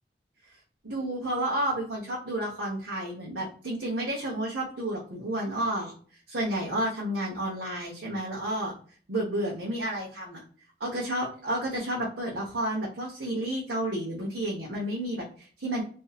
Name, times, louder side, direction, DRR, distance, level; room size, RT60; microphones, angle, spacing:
voice 1, 0.8-5.9 6.3-8.7 9.1-10.4 10.8-15.8, right 1 dB, 80° right, -5 dB, 0.9 m, -31 dB
3.0 x 2.6 x 2.3 m, 0.44 s
head